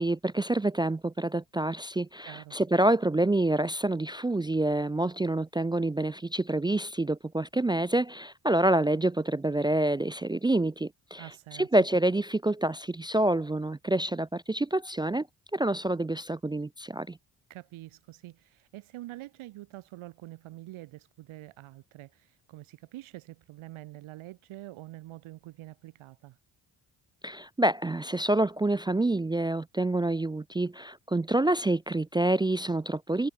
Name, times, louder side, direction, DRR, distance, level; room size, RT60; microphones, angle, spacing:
voice 1, 0.0-11.2 11.6-15.3 15.5-17.2 27.2-33.3, right 1 dB, 10° right, 0.3 m, -27 dB
voice 2, 2.2-2.6 11.2-11.7 17.5-26.4, right 16 dB, 75° right, 1.4 m, -46 dB
hypercardioid pair, 45°, 49 cm